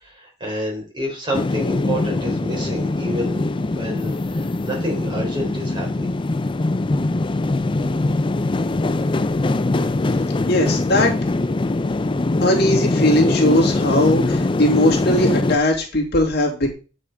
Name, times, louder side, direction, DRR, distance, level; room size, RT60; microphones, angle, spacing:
voice 1, 0.0-6.2, equal, 25° right, -1 dB, 3.9 m, -29 dB
sound 1, 1.3-15.6, left 2 dB, 25° left, 0.5 m, -22 dB
voice 2, 10.5-11.2 12.4-16.7, left 1 dB, 60° left, 0 dB, 2.3 m, -19 dB
8.2 x 5.2 x 4.8 m, 0.33 s
head